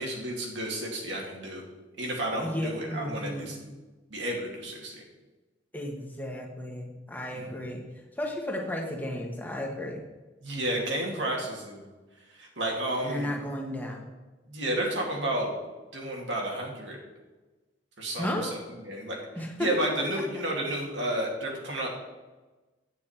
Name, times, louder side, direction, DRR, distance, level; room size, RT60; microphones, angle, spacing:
voice 1, 0.0-1.6 2.0-3.6 4.1-5.0 7.3-7.5 10.4-11.9 12.4-13.3 14.5-15.5 15.9-17.0 18.0-18.5 18.8-19.2 19.6-21.9, right 1 dB, 75° right, -1 dB, 2.4 m, -31 dB
voice 2, 2.3-3.5 5.7-7.8 8.1-10.0 13.0-14.1 18.2-18.5 19.3-19.7, left 1 dB, 10° left, 0 dB, 1.2 m, -33 dB
9.1 x 8.6 x 4.3 m, 1.2 s
head